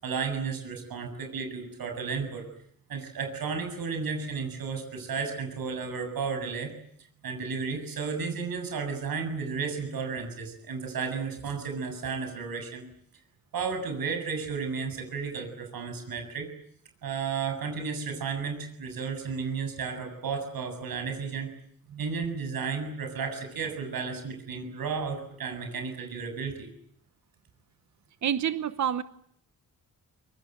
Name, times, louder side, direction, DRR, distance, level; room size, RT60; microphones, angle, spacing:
voice 1, 0.0-2.5 2.9-6.7 7.2-12.8 13.5-16.5 17.0-21.5 22.0-26.7, right 5 dB, 85° right, 5 dB, 7.3 m, -33 dB
voice 2, 28.2-29.0, right 9 dB, 55° right, 13 dB, 1.0 m, -28 dB
25.5 x 23.5 x 9.2 m, 0.69 s
wide cardioid pair, 165°, 35 cm